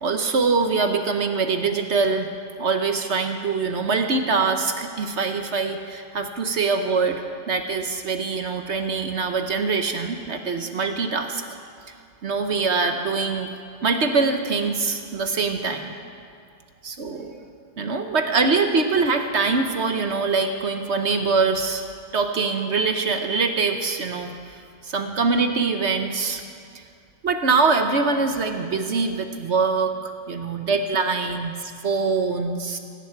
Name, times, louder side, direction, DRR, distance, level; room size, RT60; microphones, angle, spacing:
voice 1, 0.0-2.3 2.6-11.4 12.2-13.5 13.8-15.9 16.8-17.4 17.8-21.8 22.1-24.3 24.8-26.4 27.2-32.8, right 4 dB, 50° right, 6 dB, 1.0 m, -23 dB
17.5 x 16.5 x 4.6 m, 2.3 s
omnidirectional pair, 1.8 m